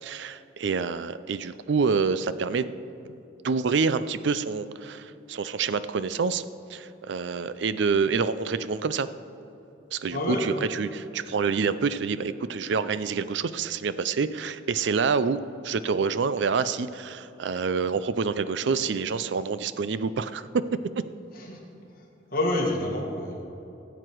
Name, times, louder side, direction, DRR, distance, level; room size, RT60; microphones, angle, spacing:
voice 1, 0.0-2.7 3.4-9.1 9.9-21.0, right 5 dB, 70° right, 14 dB, 0.4 m, -27 dB
voice 2, 10.1-10.9 21.3-21.6 21.9-22.0 22.3-23.4, left 1 dB, 50° left, -1 dB, 2.0 m, -28 dB
17.0 x 8.0 x 4.6 m, 3.0 s
head